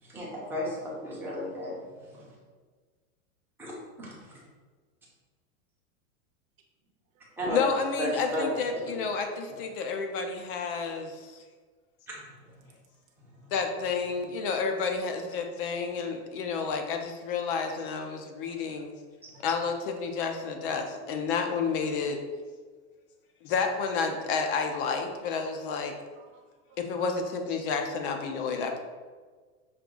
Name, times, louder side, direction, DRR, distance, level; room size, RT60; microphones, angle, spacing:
voice 1, 0.0-1.7 2.1-2.4 3.6-3.7 4.0-4.4 7.4-7.6 8.0-8.5 8.9-9.0 12.1-12.3 19.2-19.4, equal, 5° right, -6 dB, 0.6 m, -34 dB
voice 2, 7.5-11.4 13.5-18.9 19.4-22.2 23.4-26.0 26.8-28.8, left 5 dB, 40° left, 5 dB, 0.4 m, -30 dB
voice 3, 26.1-27.0, right 6 dB, 55° right, 2 dB, 0.8 m, -60 dB
5.9 x 2.3 x 3.7 m, 1.5 s
supercardioid pair, 155°, 45 cm